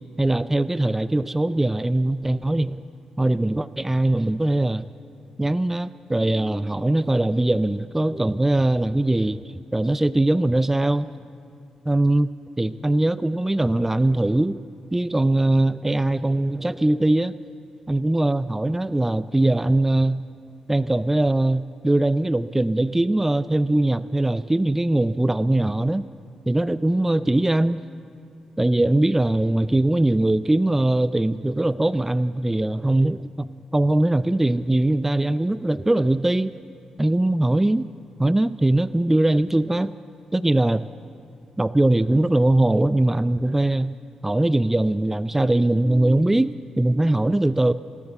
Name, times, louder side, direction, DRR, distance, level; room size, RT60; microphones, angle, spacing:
voice 1, 0.2-2.8 3.2-4.9 5.4-11.1 11.9-14.6 14.9-17.3 17.9-20.2 20.7-26.1 26.5-27.8 28.6-36.5 37.0-37.9 38.2-39.9 40.3-40.9 41.6-43.9 44.2-47.7, right 1 dB, 15° right, 16 dB, 0.4 m, -21 dB
18.0 x 9.6 x 7.9 m, 2.5 s
hypercardioid pair, 40°, 2 cm